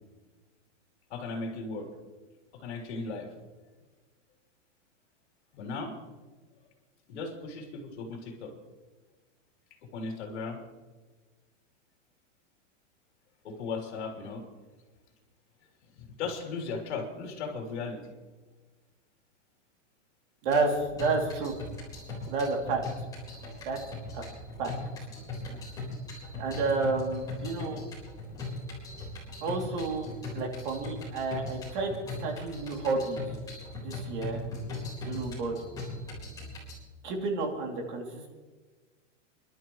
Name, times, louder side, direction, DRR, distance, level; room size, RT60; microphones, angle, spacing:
voice 1, 1.1-1.9 2.5-3.3 5.5-6.0 7.1-8.5 9.9-10.6 13.4-14.4 16.0-18.1 25.5-25.6 30.4-30.5, left 4 dB, 65° left, 2 dB, 3.5 m, -37 dB
voice 2, 20.4-21.5 22.3-22.8 23.6-23.8 24.1-24.2 24.6-24.7 25.4-25.6 26.4-27.8 29.4-33.3 33.8-34.5 35.0-35.5 37.0-38.3, right 3 dB, 40° right, 1 dB, 2.8 m, -31 dB
sound 1, 20.5-36.7, left 2 dB, 10° left, 4.1 m, -39 dB
29.0 x 12.0 x 3.1 m, 1.3 s
supercardioid pair, 180°, 36 cm